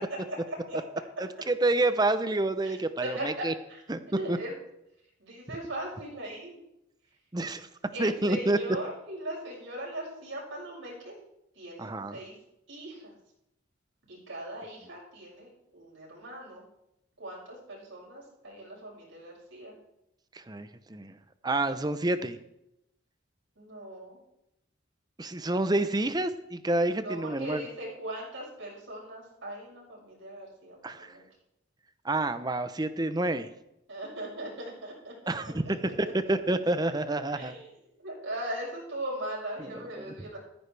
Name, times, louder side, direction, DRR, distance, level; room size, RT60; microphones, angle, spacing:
voice 1, 0.5-0.8 2.6-2.7 3.0-3.8 4.1-4.5 5.2-6.6 7.9-11.2 11.6-12.3 12.7-13.1 14.1-16.6 17.2-19.7 23.6-24.2 27.0-31.2 33.9-35.3 35.8-35.9 37.3-37.7 38.0-40.4, right 1 dB, 75° right, -4 dB, 6.5 m, -39 dB
voice 2, 1.2-3.5 3.9-4.0 4.3-4.4 7.3-7.7 8.0-8.6 11.8-12.2 20.3-21.1 21.4-22.4 25.2-27.7 30.8-31.1 32.0-33.5 35.3-37.5 39.6-39.7 40.0-40.1, right 2 dB, 20° right, 11 dB, 0.7 m, -28 dB
14.5 x 14.5 x 3.4 m, 0.83 s
head